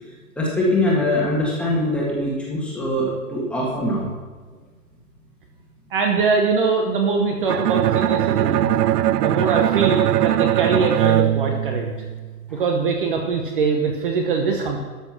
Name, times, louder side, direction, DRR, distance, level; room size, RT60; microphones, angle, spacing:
voice 1, 0.3-4.1 12.5-12.6, left 1 dB, ahead, -5 dB, 1.6 m, -22 dB
voice 2, 5.9-8.7 9.2-11.9 12.5-14.8, right 4 dB, 35° right, 2 dB, 1.0 m, -22 dB
Bowed string instrument, 7.5-12.4, right 12 dB, 80° right, 0.6 m, -20 dB
12.5 x 6.2 x 6.1 m, 1.4 s
hypercardioid pair, 160°, 47 cm